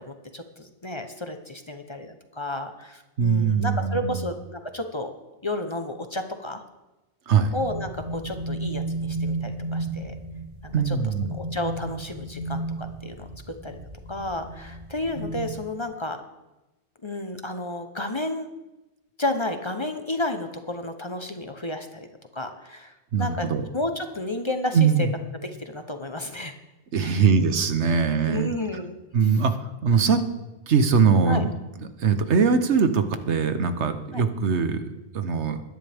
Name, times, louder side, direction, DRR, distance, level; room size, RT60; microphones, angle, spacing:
voice 1, 0.0-5.1 5.4-6.6 7.5-10.1 10.6-11.0 11.4-13.8 14.1-16.2 17.0-18.5 19.2-22.1 22.3-23.5 23.7-25.1 25.6-26.5 27.0-27.2 28.3-29.0 29.9-30.1 31.3-31.4 34.1-34.2, left 1 dB, 25° left, 6 dB, 0.9 m, -32 dB
voice 2, 3.2-4.3 7.3-7.5 10.7-11.4 23.1-23.6 24.7-25.1 26.9-28.5 29.1-30.2 30.7-31.5 31.8-34.9 35.1-35.6, right 5 dB, 90° right, 9 dB, 1.3 m, -22 dB
sound 1, 7.6-15.6, right 2 dB, 50° right, 2.7 m, -33 dB
21.0 x 10.0 x 3.5 m, 1.0 s
omnidirectional pair, 1.1 m